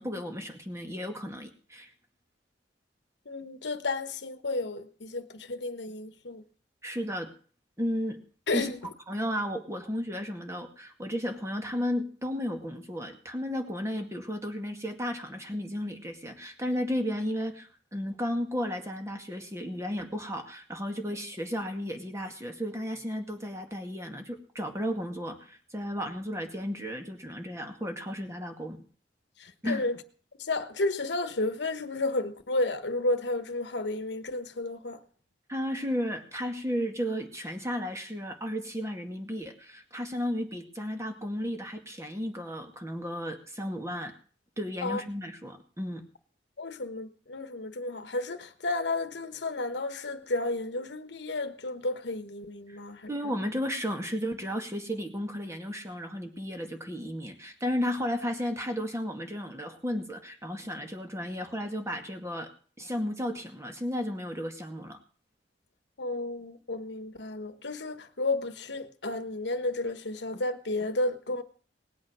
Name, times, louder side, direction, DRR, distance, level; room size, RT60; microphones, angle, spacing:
voice 1, 0.0-1.9 6.8-7.3 7.8-8.2 8.5-8.7 9.1-28.8 29.6-29.9 35.5-44.1 44.6-46.0 52.7-52.8 53.1-62.5 62.8-65.0, equal, 15° right, 2.1 m, -34 dB
voice 2, 3.3-6.4 8.5-8.8 29.4-30.0 30.4-35.0 44.8-45.0 46.6-53.1 66.0-71.4, left 2 dB, 70° left, 1.3 m, -32 dB
19.0 x 8.5 x 6.1 m
head